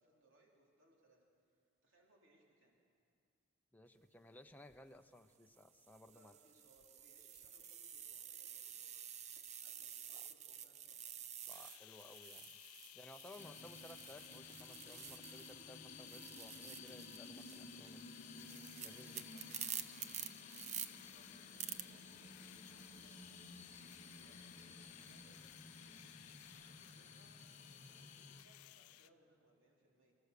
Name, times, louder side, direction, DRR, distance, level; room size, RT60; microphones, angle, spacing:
voice 1, 0.0-2.8 6.1-9.1 9.6-11.2 18.9-19.5 20.8-30.1, right 1 dB, 60° right, -2 dB, 3.6 m, -72 dB
voice 2, 3.7-6.3 11.5-12.6 12.9-18.2 18.8-19.3, left 1 dB, 10° left, 7 dB, 0.7 m, -59 dB
sound 1, 4.5-4.8 5.5-15.7 15.9-20.9 21.6-21.8, right 9 dB, 30° right, 0.6 m, -50 dB
sound 2, 11.5-29.1, left 15 dB, 85° left, 0.4 m, -59 dB
sound 3, 13.4-28.4, left 3 dB, 35° left, 1.0 m, -55 dB
28.5 x 16.0 x 6.8 m, 2.3 s
head